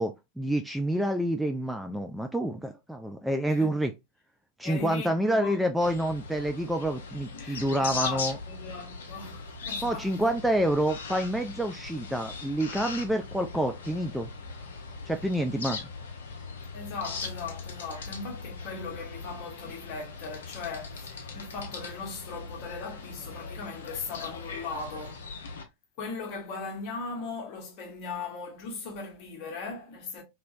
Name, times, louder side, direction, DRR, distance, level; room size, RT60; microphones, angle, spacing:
voice 1, 0.0-3.9 4.6-8.4 9.8-14.3 15.1-15.9, right 1 dB, 5° right, 0.3 m, -28 dB
voice 2, 4.6-5.6 7.3-10.3 16.7-25.3 26.0-30.2, left 4 dB, 45° left, 1.2 m, -38 dB
sound 1, 5.8-25.6, left 4 dB, 65° left, 0.7 m, -40 dB
3.0 x 2.9 x 2.5 m
figure-of-eight pair, 90°, 0 cm